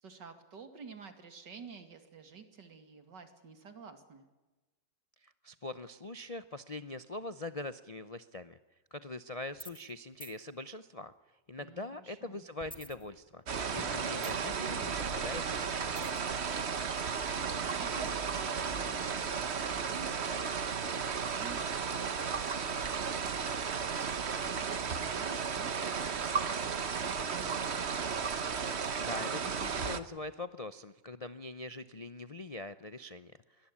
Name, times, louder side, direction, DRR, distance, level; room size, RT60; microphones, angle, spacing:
voice 1, 0.0-4.3 11.6-12.5 16.6-23.4 24.3-28.0, right 5 dB, 80° right, 8 dB, 3.1 m, -51 dB
voice 2, 5.2-8.6 8.9-13.4 13.7-16.1 29.0-33.7, left 2 dB, 45° left, 11 dB, 0.4 m, -43 dB
sound 1, 9.5-9.9 10.2-10.4 12.6-13.5 13.8-14.6 16.0-16.3, equal, 5° left, 1.5 m, -49 dB
sound 2, 13.5-30.0, right 6 dB, 40° right, 1.3 m, -34 dB
22.5 x 19.0 x 9.9 m, 1.1 s
omnidirectional pair, 1.9 m